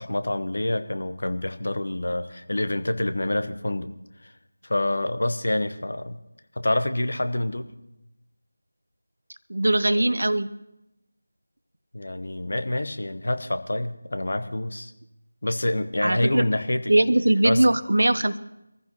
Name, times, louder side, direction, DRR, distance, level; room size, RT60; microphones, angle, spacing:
voice 1, 0.0-3.9 4.2-4.3 4.6-6.2 6.6-7.7 11.9-14.9 15.4-16.9 17.4-17.6, left 1 dB, 60° left, 10 dB, 1.2 m, -27 dB
voice 2, 9.5-10.5 16.0-16.5 16.9-18.4, right 1 dB, 65° right, 14 dB, 0.8 m, -20 dB
24.0 x 15.0 x 3.0 m, 0.90 s
figure-of-eight pair, 170°, 0 cm